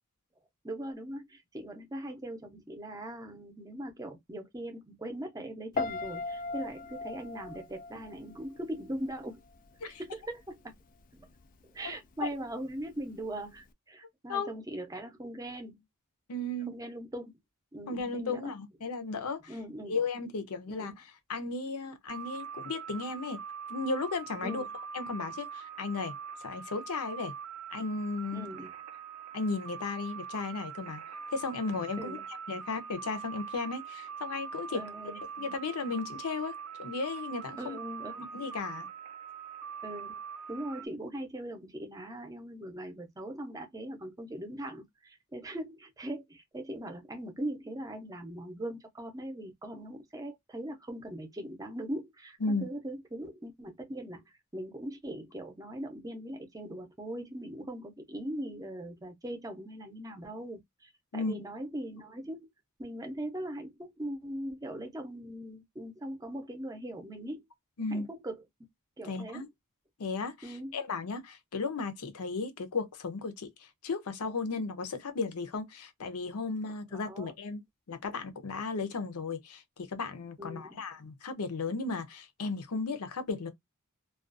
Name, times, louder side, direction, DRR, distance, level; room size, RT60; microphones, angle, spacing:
voice 1, 0.6-9.4 9.8-10.7 11.1-11.3 11.6-15.8 16.7-17.3 17.7-18.5 19.5-20.0 20.7-21.0 24.4-24.7 28.3-28.7 32.0-32.2 34.7-35.2 37.6-38.3 39.8-40.2 40.5-54.2 54.5-62.5 62.8-67.4 67.9-68.4 69.0-69.4 70.4-70.8 76.9-77.3 80.4-80.7, right 1 dB, 15° right, 0.6 m, -40 dB
Piano, 5.7-8.8 9.1-9.6, left 3 dB, 40° left, 0.3 m, -37 dB
voice 2, 16.3-16.7 17.9-19.5 19.9-20.9 21.3-23.4 23.7-27.3 27.7-28.5 29.3-31.0 31.3-32.2 32.5-34.8 35.4-37.8 38.3-38.9 52.4-52.7 61.1-61.4 67.8-68.1 69.0-69.5 70.0-83.5, left 3 dB, 80° left, 0.6 m, -35 dB
sound 1, 22.1-40.9, right 7 dB, 85° right, 0.4 m, -43 dB
2.4 x 2.3 x 2.4 m
head